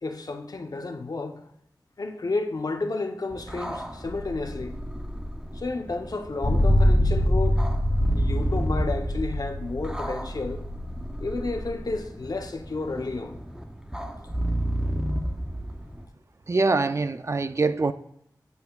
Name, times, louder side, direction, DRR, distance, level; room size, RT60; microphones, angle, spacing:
voice 1, 0.0-1.5 2.0-4.8 5.5-7.6 8.1-10.6 11.2-13.4, left 3 dB, 60° left, 0.8 m, -31 dB
sound 1, 3.3-16.1, right 1 dB, 10° right, 0.6 m, -33 dB
sound 2, 6.4-11.6, left 1 dB, 45° left, 2.1 m, -24 dB
voice 2, 16.5-17.9, right 3 dB, 40° right, 0.4 m, -24 dB
8.6 x 8.2 x 2.4 m
wide cardioid pair, 85°, 7 cm